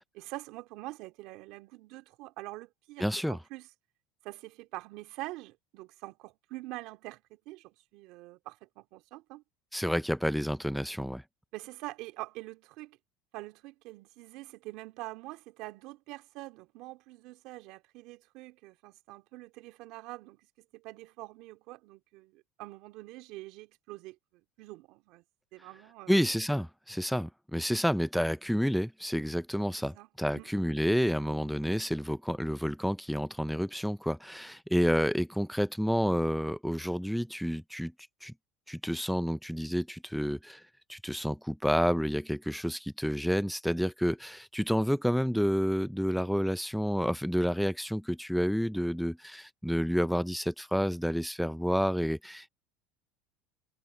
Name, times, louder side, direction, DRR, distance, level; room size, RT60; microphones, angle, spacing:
voice 1, 0.1-3.7 4.2-9.4 11.5-13.0 13.3-24.2 24.6-25.2 25.5-26.2 29.9-30.1 30.3-30.5, right 19 dB, 65° right, 2.8 m, -45 dB
voice 2, 3.0-3.4 9.7-11.2 26.1-37.9 38.2-38.3 38.7-40.6 40.9-52.5, equal, ahead, 0.5 m, -29 dB
supercardioid pair, 110°, 0 cm